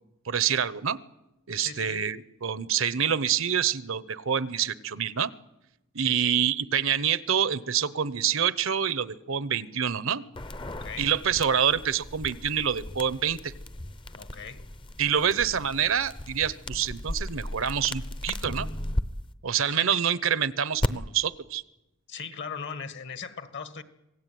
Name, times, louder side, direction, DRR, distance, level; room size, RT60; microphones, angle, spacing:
voice 1, 0.3-1.0 1.5-5.3 5.9-10.2 11.0-13.5 15.0-18.7 19.4-21.6, right 8 dB, 65° right, 17 dB, 0.9 m, -26 dB
voice 2, 1.6-2.0 6.0-6.4 10.7-11.1 14.1-14.6 19.7-20.0 22.1-23.8, left 6 dB, 55° left, 12 dB, 1.7 m, -39 dB
sound 1, 10.3-19.0 20.8-20.9, left 1 dB, 25° left, 0.8 m, -35 dB
26.5 x 18.0 x 9.3 m, 0.94 s
head